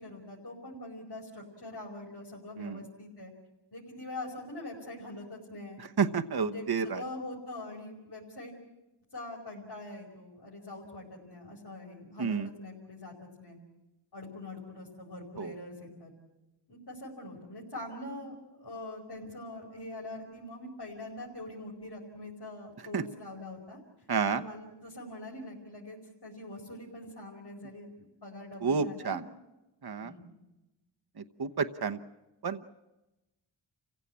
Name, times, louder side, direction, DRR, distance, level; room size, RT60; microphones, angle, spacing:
voice 1, 0.0-3.3 3.7-5.8 6.4-8.5 9.1-13.6 14.1-16.1 16.7-18.3 18.6-23.8 24.3-29.2 30.0-30.3, left 1 dB, 50° left, -4 dB, 5.2 m, -43 dB
voice 2, 6.0-7.0 12.2-12.5 15.4-15.5 22.9-23.0 24.1-24.4 28.6-29.2 29.8-30.1 31.4-32.0 32.4-32.6, right 5 dB, 50° right, 8 dB, 1.0 m, -29 dB
28.5 x 16.5 x 8.6 m, 1.0 s
cardioid pair, 45°, 48 cm